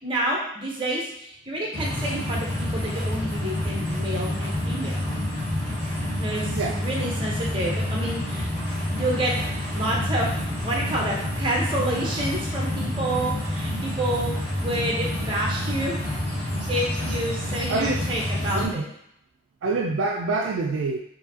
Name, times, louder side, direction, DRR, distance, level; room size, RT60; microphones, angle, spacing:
voice 1, 0.0-5.0 6.2-8.5 9.0-9.3 9.7-10.3 10.6-14.3 14.6-16.0 16.7-18.8, right 1 dB, 25° right, -3 dB, 0.9 m, -29 dB
sound 1, 1.7-18.7, left 1 dB, 10° left, 1.1 m, -28 dB
voice 2, 18.5-18.8 19.6-21.0, right 3 dB, 75° right, 1 dB, 0.4 m, -25 dB
4.7 x 2.7 x 2.8 m, 0.74 s
head